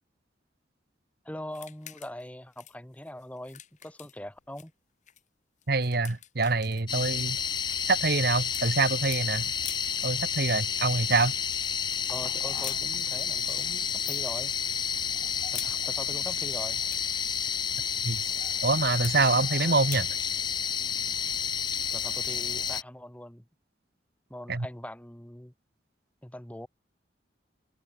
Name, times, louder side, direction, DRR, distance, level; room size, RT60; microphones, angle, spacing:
voice 1, 1.2-4.7 12.1-14.5 15.5-16.8 21.9-23.5 24.3-25.5 26.2-26.7, left 1 dB, 10° left, 1.6 m, -42 dB
sound 1, 1.5-2.3 2.5-4.7 5.1-5.2 5.6-9.2 9.6-10.0 11.1-11.4 12.6-12.8 14.0-14.4 15.2-15.8 16.7-17.2 19.0-19.2 19.9-20.1, left 12 dB, 45° left, 2.0 m, -45 dB
voice 2, 5.7-7.4 7.8-9.5 10.0-11.3 18.0-18.3 18.6-20.1 24.5-24.7, right 3 dB, 60° right, 1.3 m, -25 dB
sound 2, 6.9-22.8, left 7 dB, 25° left, 0.4 m, -30 dB
head